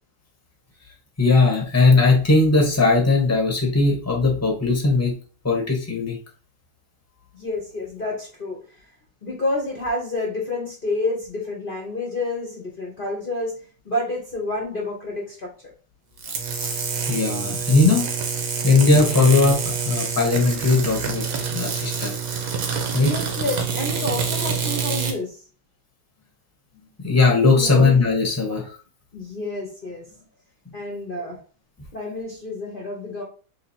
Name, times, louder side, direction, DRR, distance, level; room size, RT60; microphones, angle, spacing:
voice 1, 1.2-5.1 5.4-6.2 16.6-16.8 17.1-18.1 18.6-21.2 21.5-22.2 22.9-23.1 27.0-28.6, left 3 dB, 10° left, 0 dB, 0.7 m, -18 dB
voice 2, 7.3-8.6 9.2-13.5 13.8-15.5 23.0-25.4 26.7-26.9 27.5-27.9 29.1-30.2 30.7-31.4 31.9-33.2, left 2 dB, 45° left, -1 dB, 0.7 m, -29 dB
sound 1, 16.2-25.2, right 6 dB, 60° right, 1.0 m, -27 dB
3.4 x 2.9 x 4.2 m, 0.38 s
omnidirectional pair, 2.1 m